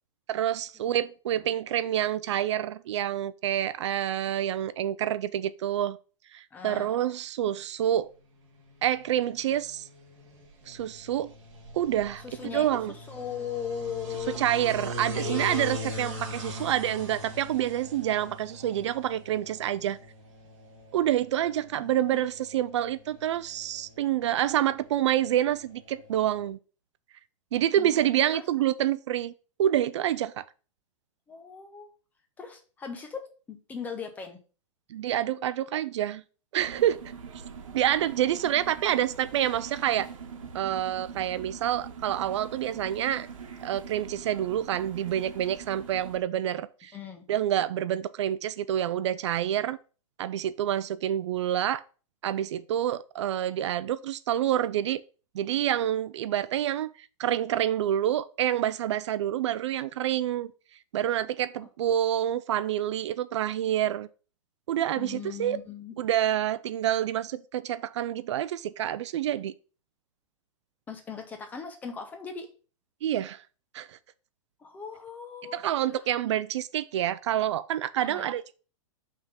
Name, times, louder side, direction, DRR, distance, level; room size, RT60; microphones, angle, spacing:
voice 1, 0.3-6.0 6.3-8.1 8.8-9.9 10.7-11.3 11.7-12.2 12.5-12.9 14.4-20.0 20.9-26.6 27.5-29.3 29.6-30.4 34.9-36.2 36.5-37.0 37.7-40.1 40.5-43.3 43.6-46.9 47.3-49.8 50.2-51.8 52.2-55.0 55.3-60.5 60.9-64.1 64.7-65.6 66.0-69.5 73.0-73.4 73.7-74.0 75.5-78.5, right 11 dB, 60° right, 0.4 m, -27 dB
voice 2, 6.5-6.9 12.2-12.7 13.1-14.4 15.1-15.6 21.7-22.2 27.8-28.4 31.3-31.9 32.4-34.4 46.9-47.2 65.0-66.0 70.9-72.5 74.6-75.6 78.0-78.3, left 7 dB, 10° left, 0.7 m, -38 dB
sound 1, 8.4-26.5, equal, 30° right, 3.5 m, -41 dB
sound 2, 36.6-46.2, right 6 dB, 85° right, 1.3 m, -43 dB
5.6 x 3.6 x 5.4 m
supercardioid pair, 165°, 17 cm